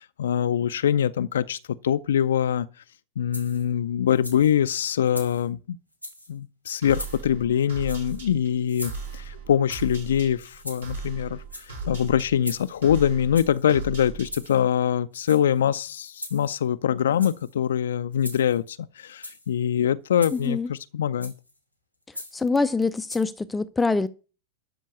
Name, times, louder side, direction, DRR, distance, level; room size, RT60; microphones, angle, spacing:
voice 1, 0.0-2.7 3.2-5.8 6.3-21.3, left 9 dB, 65° left, 0.5 m, -24 dB
sound 1, 3.3-3.7 4.1-4.5 5.0-5.5 5.9-6.3 6.9-7.3 7.8-8.2 8.7-9.3 9.7-10.0 10.5-11.1 11.4-11.8 12.4-12.8 13.3-13.6 14.2-14.6 15.1-15.6 16.2-16.7 17.1-17.5 18.2-18.6 19.1-19.5 20.2-20.6 21.2-21.5 22.1-22.5 23.1-23.2, left 1 dB, 90° right, 2.6 m, -40 dB
sound 2, 6.8-14.7, right 4 dB, 65° right, 7.4 m, -38 dB
voice 2, 20.3-20.7 22.3-24.1, left 3 dB, 10° left, 0.6 m, -24 dB
13.0 x 5.4 x 8.6 m
figure-of-eight pair, 90°, 0 cm